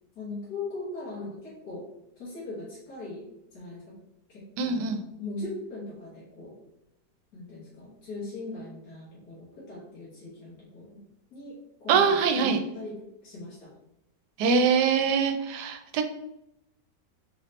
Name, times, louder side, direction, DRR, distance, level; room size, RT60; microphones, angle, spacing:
voice 1, 0.2-1.8 2.2-3.3 3.5-4.0 4.3-6.5 7.3-11.0 11.3-13.7, left 2 dB, 70° left, -7 dB, 1.7 m, -40 dB
voice 2, 4.6-5.0 11.9-12.6 14.4-16.0, right 5 dB, 85° right, 6 dB, 1.2 m, -23 dB
3.8 x 2.9 x 3.1 m, 0.82 s
omnidirectional pair, 1.8 m